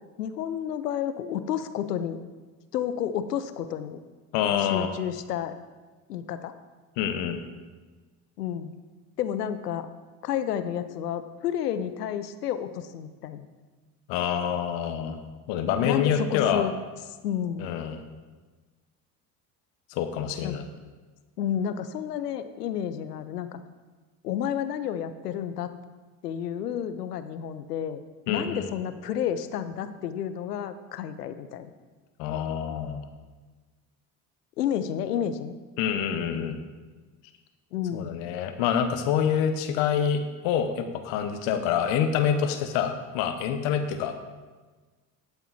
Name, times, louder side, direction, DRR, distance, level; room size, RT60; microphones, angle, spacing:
voice 1, 0.2-2.2 2.7-4.0 4.6-5.5 6.1-6.5 8.4-8.7 9.2-9.9 10.2-13.5 15.8-16.7 17.2-17.7 20.4-20.6 21.4-23.6 24.2-25.7 26.2-28.0 28.3-31.7 34.6-35.5 37.7-38.1, left 9 dB, 90° left, 11 dB, 0.6 m, -30 dB
voice 2, 4.3-5.0 7.0-7.4 14.1-15.2 15.5-16.7 17.6-18.0 19.9-20.6 28.3-28.7 32.2-33.1 35.8-36.6 37.9-44.1, left 8 dB, 70° left, 8 dB, 1.1 m, -26 dB
11.5 x 8.2 x 4.1 m, 1.3 s
hypercardioid pair, 55°, 46 cm